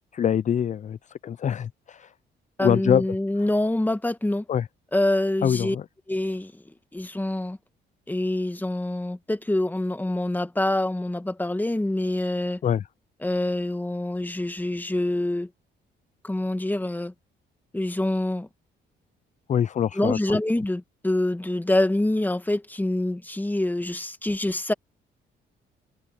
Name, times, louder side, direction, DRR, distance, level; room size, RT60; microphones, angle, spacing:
voice 1, 0.1-1.0 1.2-2.1 2.6-3.0 4.5-4.7 5.4-5.8 12.6-12.8 19.5-20.4, left 8 dB, 40° left, 0.4 m, -24 dB
voice 2, 2.6-4.4 4.9-5.8 6.1-6.5 6.9-7.6 8.1-12.6 13.2-15.5 16.2-17.1 17.7-18.5 19.9-24.7, left 1 dB, 10° left, 1.4 m, -26 dB
cardioid pair, 90°, 20 cm